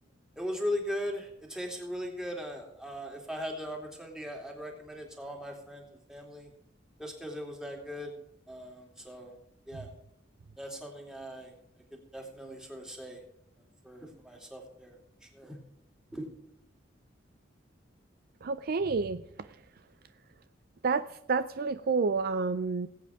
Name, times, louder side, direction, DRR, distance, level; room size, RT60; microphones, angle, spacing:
voice 1, 0.4-6.5 7.0-8.1 8.5-9.4 9.7-9.9 10.6-11.5 11.9-13.2 13.8-15.6 16.1-16.3, equal, 5° right, 0 dB, 2.6 m, -39 dB
voice 2, 18.4-19.6 20.8-22.9, right 4 dB, 55° right, 13 dB, 0.4 m, -29 dB
20.0 x 8.4 x 3.6 m, 0.76 s
head